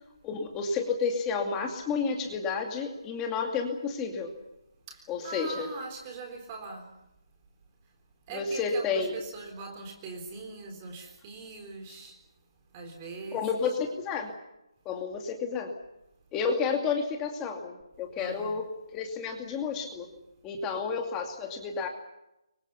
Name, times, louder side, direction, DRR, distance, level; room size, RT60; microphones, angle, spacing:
voice 1, 0.2-4.3 5.1-5.7 8.3-9.2 13.3-14.3 14.9-15.7 16.3-20.1 20.4-21.9, left 5 dB, 10° left, 3 dB, 2.4 m, -31 dB
voice 2, 4.9-6.9 8.3-12.2 12.7-13.7 18.2-18.6, right 3 dB, 20° right, 3 dB, 3.8 m, -41 dB
29.5 x 24.0 x 5.7 m, 0.89 s
hypercardioid pair, 175°, 3 cm